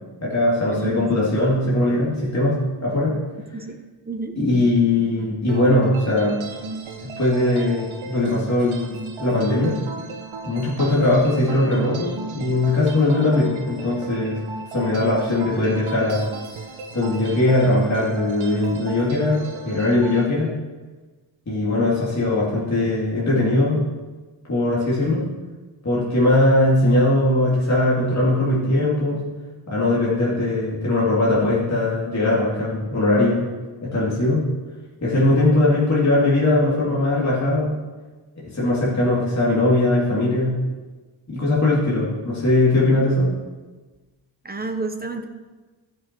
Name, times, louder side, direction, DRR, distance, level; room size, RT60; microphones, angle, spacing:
voice 1, 0.2-3.2 4.4-6.4 7.2-8.9 9.2-9.7 10.4-14.4 14.7-16.3 16.9-20.5 21.5-23.8 24.5-25.2 25.8-29.2 29.7-33.4 33.8-34.4 35.0-37.8 38.5-40.6 41.3-43.3, left 2 dB, 35° left, -7 dB, 2.6 m, -20 dB
voice 2, 0.7-1.1 3.5-3.8 4.1-4.4 44.4-45.3, right 3 dB, 20° right, 6 dB, 0.8 m, -30 dB
sound 1, 5.5-20.3, right 4 dB, 70° right, 1.0 m, -36 dB
13.5 x 6.4 x 4.6 m, 1.3 s
wide cardioid pair, 145°, 49 cm